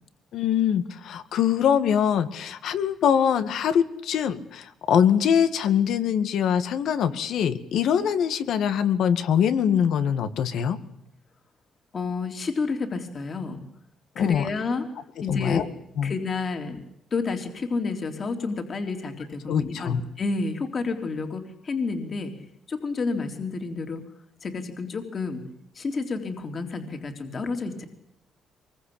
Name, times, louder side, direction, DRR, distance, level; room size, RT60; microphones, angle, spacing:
voice 1, 0.3-10.8 14.2-14.5 15.3-15.7 16.0-16.1 19.5-20.0, left 8 dB, 75° left, 11 dB, 2.0 m, -23 dB
voice 2, 11.9-13.6 14.2-14.9 15.2-15.6 16.0-16.8 17.1-22.3 22.7-24.0 24.4-25.4 25.7-27.9, left 4 dB, 45° left, 4 dB, 3.7 m, -30 dB
25.0 x 23.0 x 8.8 m, 0.78 s
cardioid pair, 90°, 0 cm